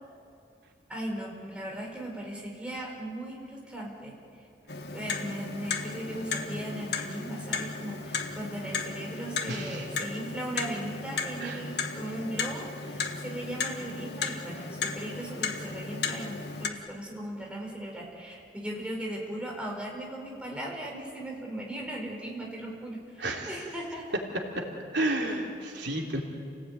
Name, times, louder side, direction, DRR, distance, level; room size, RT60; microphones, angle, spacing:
voice 1, 0.9-4.1 4.9-24.2, right 1 dB, 5° right, -1 dB, 4.8 m, -38 dB
Clock, 4.7-16.7, left 4 dB, 70° left, 1.6 m, -35 dB
voice 2, 9.5-9.8 11.4-11.6 23.2-23.6 24.5-24.7 24.9-26.2, right 1 dB, 85° right, 0 dB, 3.3 m, -31 dB
29.5 x 18.0 x 9.4 m, 2.5 s
head